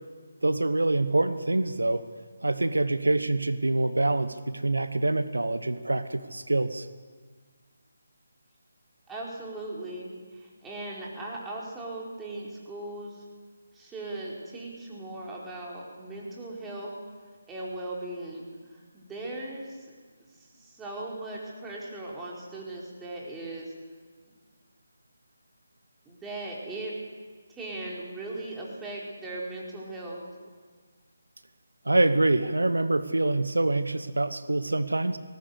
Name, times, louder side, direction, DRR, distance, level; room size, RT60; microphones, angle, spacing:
voice 1, 0.4-2.0 2.4-6.9 31.9-35.2, right 2 dB, 80° right, 12 dB, 1.1 m, -25 dB
voice 2, 9.1-13.2 13.7-17.0 17.5-19.9 20.4-23.7 26.0-26.9 27.5-30.2, right 2 dB, 10° right, -4 dB, 4.6 m, -38 dB
19.5 x 19.0 x 8.2 m, 1.5 s
figure-of-eight pair, 150°, 0 cm